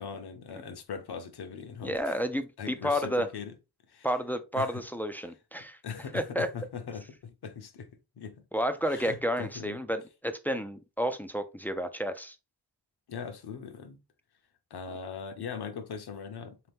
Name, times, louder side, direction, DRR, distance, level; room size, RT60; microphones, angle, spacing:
voice 1, 0.0-2.2 2.6-3.5 3.9-4.1 4.6-4.8 5.8-8.4 8.9-9.8 13.1-14.0 14.7-16.7, left 6 dB, 60° left, 0.8 m, -40 dB
voice 2, 1.8-3.3 4.0-5.8 6.1-6.5 8.5-12.4, equal, 5° left, 0.3 m, -31 dB
3.5 x 2.9 x 3.4 m
wide cardioid pair, 115°, 44 cm